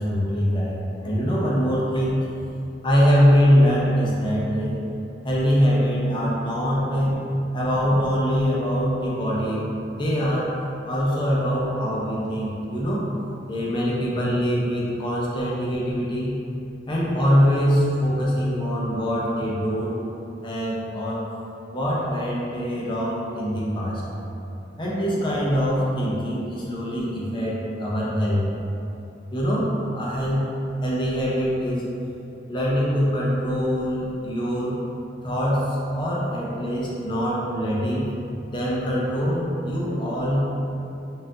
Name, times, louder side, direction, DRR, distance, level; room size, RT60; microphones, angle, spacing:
voice 1, 0.0-2.2 2.8-4.8 5.2-7.2 7.5-9.7 9.9-10.6 10.9-13.0 13.5-16.4 16.9-19.9 20.4-21.3 21.7-24.0 24.8-28.5 29.3-30.5 30.8-31.9 32.5-34.8 35.2-38.1 38.5-40.5, equal, 25° left, -6 dB, 0.6 m, -23 dB
5.4 x 2.5 x 2.7 m, 2.8 s
head